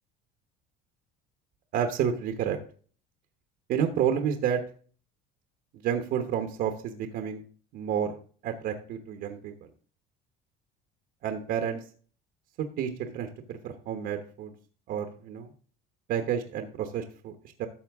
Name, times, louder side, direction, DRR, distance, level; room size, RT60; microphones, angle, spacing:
voice 1, 1.7-2.6 3.7-4.6 5.8-7.4 7.7-8.1 8.4-9.7 11.2-11.8 12.8-14.5 14.9-15.5 16.1-17.3 17.6-17.7, right 8 dB, 50° right, 6 dB, 1.1 m, -30 dB
12.0 x 7.1 x 3.5 m, 0.42 s
cardioid pair, 155°, 20 cm